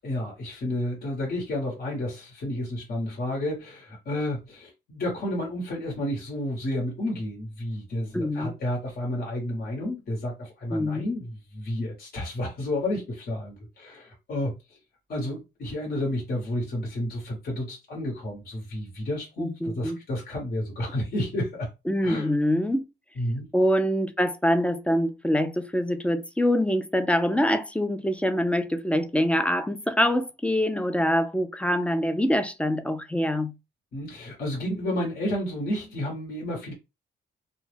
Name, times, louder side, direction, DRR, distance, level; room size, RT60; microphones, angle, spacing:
voice 1, 0.0-14.8 15.1-21.7 22.0-22.3 23.2-23.5 33.9-36.7, left 1 dB, 50° left, 1.1 m, -31 dB
voice 2, 8.1-8.5 10.7-11.0 19.4-20.0 21.9-22.8 23.5-33.5, equal, 5° left, 0.3 m, -24 dB
2.2 x 2.1 x 3.2 m
cardioid pair, 90°, 20 cm